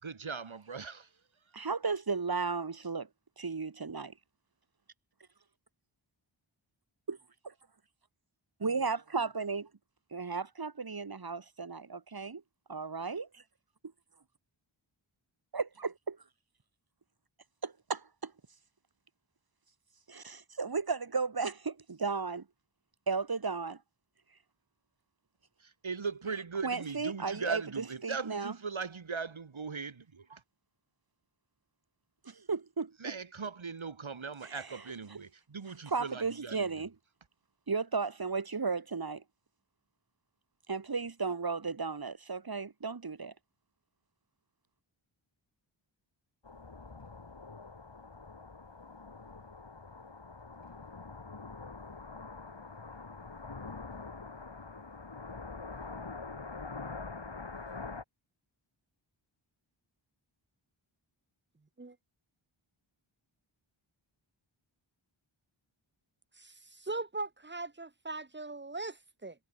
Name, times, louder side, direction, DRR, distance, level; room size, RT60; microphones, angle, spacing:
voice 1, 0.0-1.5 25.6-30.4 33.0-36.9, right 5 dB, 75° right, 2.2 m, -39 dB
voice 2, 1.5-3.1 3.4-4.1 7.1-7.2 7.4-7.5 8.6-9.7 10.1-12.4 12.7-13.4 15.5-16.2 17.6-18.3 20.1-22.4 23.1-23.8 26.6-28.5 32.2-32.9 34.5-34.6 35.9-36.9 37.7-39.2 40.7-43.3, right 4 dB, 50° right, 1.5 m, -34 dB
sound 1, 46.4-58.0, left 4 dB, 60° left, 3.7 m, -45 dB
voice 3, 66.4-69.3, right 3 dB, 20° right, 1.1 m, -40 dB
wide cardioid pair, 50°, 48 cm